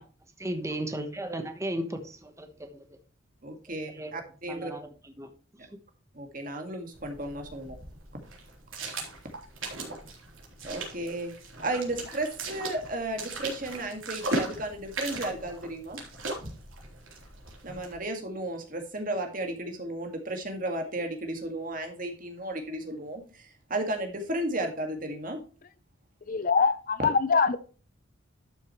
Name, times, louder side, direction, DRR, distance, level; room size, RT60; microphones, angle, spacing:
voice 1, 0.4-2.8 3.7-4.1 4.5-5.3 5.6-5.7, right 1 dB, 15° right, 1.1 m, -35 dB
voice 2, 3.4-4.7 6.1-7.8 9.2-9.3 10.6-11.3 11.6-16.0 17.6-25.4, right 1 dB, 45° right, 1.9 m, -34 dB
sound 1, 6.9-18.0, right 2 dB, 80° right, 3.5 m, -38 dB
voice 3, 26.3-27.6, left 5 dB, 45° left, 0.6 m, -23 dB
12.0 x 6.6 x 3.1 m
head